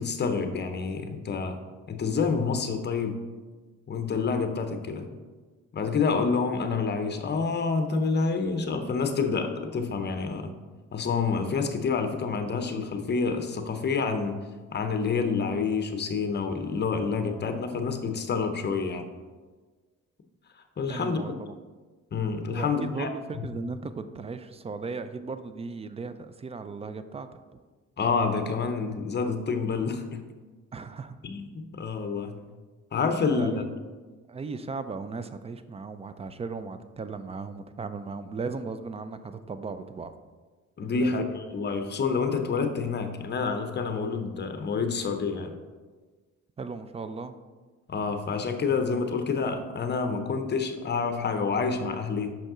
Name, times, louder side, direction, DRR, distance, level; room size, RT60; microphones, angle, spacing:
voice 1, 0.0-1.6 1.9-3.2 3.9-5.1 5.7-10.5 10.9-14.4 14.7-19.1 20.8-21.2 22.1-23.1 23.3-23.5 28.0-30.2 31.2-32.4 32.9-33.6 40.8-45.5 47.9-52.3, left 5 dB, 35° left, 7 dB, 0.7 m, -28 dB
voice 2, 20.9-21.5 22.5-27.4 30.7-31.2 33.2-33.7 34.3-40.1 40.9-41.2 46.6-47.3, right 4 dB, 20° right, 11 dB, 0.3 m, -36 dB
5.5 x 5.2 x 3.7 m, 1.4 s
cardioid pair, 90°, 30 cm